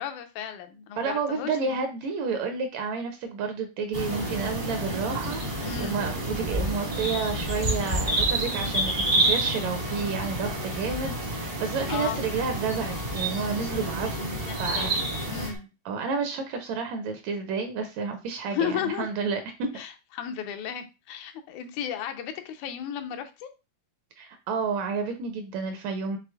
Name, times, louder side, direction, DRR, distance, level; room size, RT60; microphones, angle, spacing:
voice 1, 0.0-1.8 5.6-6.0 11.9-12.2 14.4-15.7 18.5-19.1 19.8-23.5, left 9 dB, 85° left, 7 dB, 2.0 m, -34 dB
voice 2, 1.0-15.0 15.8-19.7 24.2-26.2, right 5 dB, 80° right, 6 dB, 1.8 m, -30 dB
sound 1, 3.9-15.5, right 1 dB, 55° right, 0.6 m, -29 dB
sound 2, 9.5-15.6, left 1 dB, 65° left, 0.5 m, -46 dB
6.2 x 3.2 x 2.3 m, 0.28 s
omnidirectional pair, 3.4 m